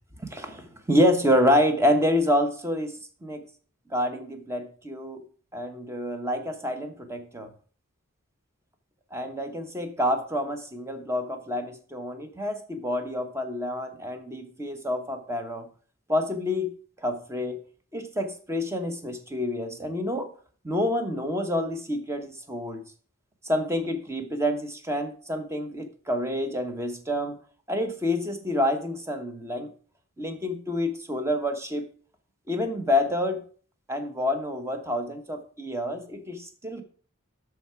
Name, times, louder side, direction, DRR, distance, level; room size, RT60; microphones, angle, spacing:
voice 1, 0.2-2.9 3.2-3.4 3.9-5.2 5.5-7.5 9.1-15.7 16.1-16.7 17.0-17.6 17.9-20.3 20.6-22.8 23.4-27.4 27.7-29.7 30.2-31.9 32.5-33.4 33.9-36.8, left 1 dB, 15° right, 5 dB, 1.1 m, -27 dB
12.5 x 4.8 x 4.7 m, 0.43 s
head